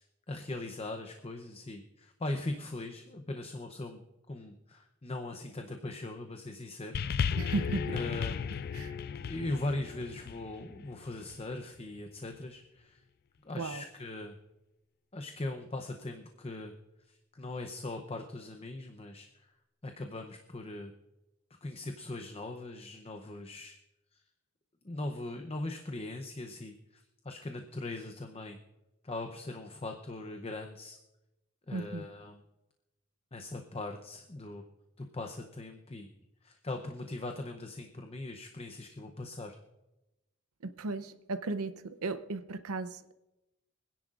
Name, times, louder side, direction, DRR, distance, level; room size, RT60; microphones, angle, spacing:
voice 1, 0.0-7.3 7.9-8.4 9.2-13.0 13.4-14.4 15.1-16.7 17.0-19.5 19.8-20.9 21.6-23.8 24.1-24.2 24.8-28.6 29.0-31.0 31.7-32.4 33.3-34.7 35.0-36.1 36.4-39.6, left 2 dB, 25° left, 5 dB, 0.7 m, -40 dB
sound 1, 6.9-11.5 12.3-12.4, left 6 dB, 45° left, 0.3 m, -35 dB
voice 2, 7.4-8.0 8.7-9.0 13.6-13.8 31.7-32.0 40.8-43.1, right 3 dB, 90° right, 11 dB, 0.7 m, -35 dB
25.0 x 10.5 x 2.5 m, 0.96 s
head